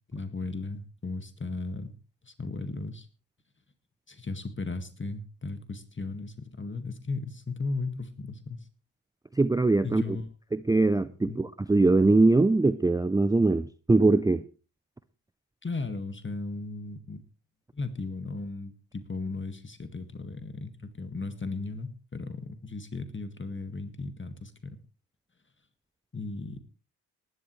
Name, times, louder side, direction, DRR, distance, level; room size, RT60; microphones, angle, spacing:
voice 1, 0.1-1.9 2.2-3.1 4.1-8.7 9.8-10.2 11.2-11.4 15.6-17.2 17.7-24.8 26.1-26.6, left 3 dB, 25° left, 1.9 m, -36 dB
voice 2, 9.4-10.0 10.5-14.4, right 2 dB, 10° right, 0.6 m, -22 dB
19.5 x 11.5 x 3.2 m
hypercardioid pair, 45°, 44 cm